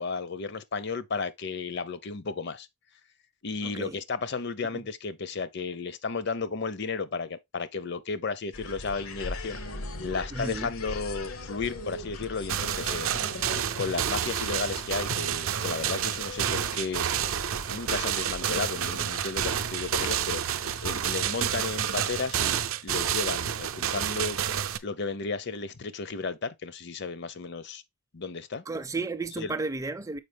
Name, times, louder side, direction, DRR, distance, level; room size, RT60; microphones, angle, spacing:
voice 1, 0.0-2.7 3.4-9.6 10.0-13.5 13.8-17.1 17.7-24.4 24.8-27.8 28.1-28.6 29.4-29.5, left 4 dB, 50° left, 0.6 m, -33 dB
voice 2, 3.6-4.0 10.3-10.7 28.7-30.2, right 3 dB, 15° right, 0.4 m, -33 dB
sound 1, 8.5-22.3, left 2 dB, 80° left, 0.9 m, -41 dB
sound 2, 12.5-24.8, right 9 dB, 70° right, 0.5 m, -29 dB
6.5 x 4.9 x 3.4 m
head